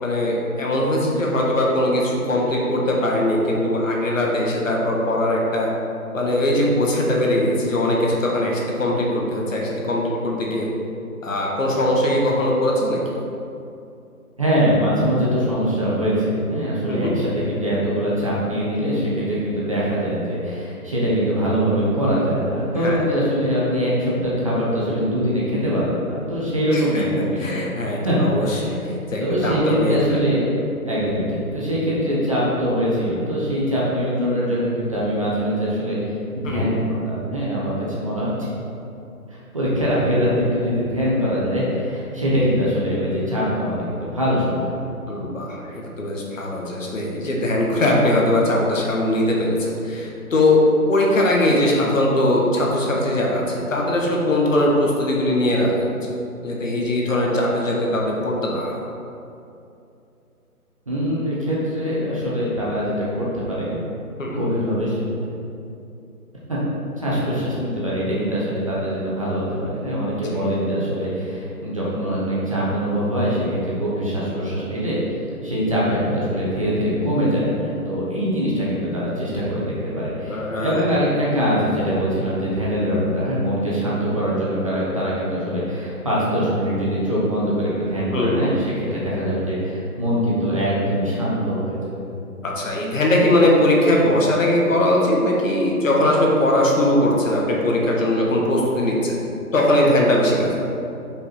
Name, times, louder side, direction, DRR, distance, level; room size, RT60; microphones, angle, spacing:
voice 1, 0.0-5.7 6.1-10.7 11.2-13.0 16.9-17.1 22.8-23.0 26.7-27.0 27.4-28.8 29.1-30.2 36.4-36.7 45.1-50.6 50.9-56.0 56.4-58.8 64.2-64.4 70.3-70.4 80.3-80.9 88.1-88.4 92.4-99.2 99.5-100.6, left 1 dB, 55° left, -2 dB, 1.3 m, -20 dB
voice 2, 14.4-27.6 28.0-28.2 28.4-28.7 29.2-30.5 30.9-38.5 39.3-44.8 60.9-63.8 64.2-65.0 66.5-66.6 67.0-75.0 75.4-91.9, equal, 20° right, -8 dB, 0.7 m, -23 dB
5.3 x 4.5 x 4.3 m, 2.6 s
figure-of-eight pair, 155°, 45 cm